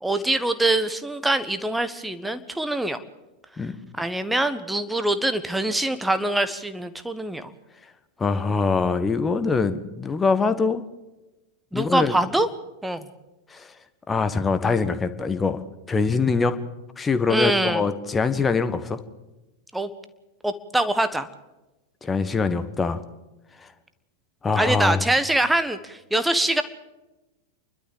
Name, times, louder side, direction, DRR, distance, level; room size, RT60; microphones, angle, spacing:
voice 1, 0.0-3.0 4.0-7.5 11.7-12.5 12.8-13.0 17.3-17.8 19.7-19.9 20.4-21.3 24.6-26.6, right 1 dB, 5° right, 11 dB, 1.4 m, -24 dB
voice 2, 8.2-10.8 11.7-12.1 13.5-13.7 14.1-15.6 15.9-16.6 17.0-19.0 22.0-23.0 24.4-25.0, left 4 dB, 15° left, 10 dB, 1.4 m, -23 dB
29.0 x 12.0 x 7.4 m, 1.0 s
figure-of-eight pair, 90°, 0 cm